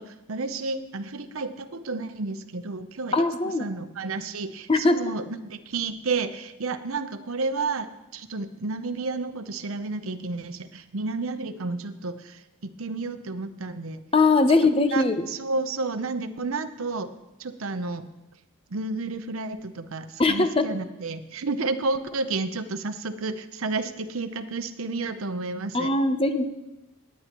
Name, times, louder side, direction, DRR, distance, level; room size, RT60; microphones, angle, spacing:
voice 1, 0.0-14.0 14.9-17.1 17.4-18.0 18.7-25.9, right 3 dB, 80° right, 10 dB, 0.7 m, -31 dB
voice 2, 3.1-3.6 4.7-5.0 14.1-15.2 20.2-20.7 25.7-26.5, left 3 dB, 25° left, 9 dB, 0.6 m, -21 dB
18.5 x 9.4 x 3.0 m, 1.0 s
head